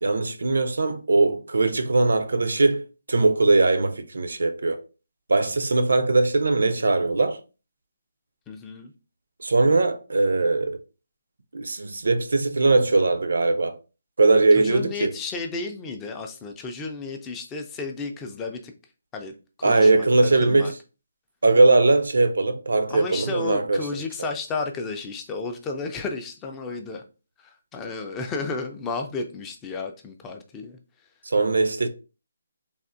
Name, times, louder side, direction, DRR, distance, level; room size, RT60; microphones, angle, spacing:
voice 1, 0.0-4.8 5.3-7.4 9.4-10.8 11.5-13.8 14.2-15.1 19.6-20.7 21.4-24.3 31.3-31.9, right 3 dB, 80° right, 0.5 m, -20 dB
voice 2, 8.5-8.9 14.5-18.7 19.1-19.3 19.6-20.7 22.9-27.0 27.4-30.8, left 4 dB, 10° left, 0.3 m, -33 dB
3.4 x 2.4 x 2.5 m
hypercardioid pair, 165°, 0 cm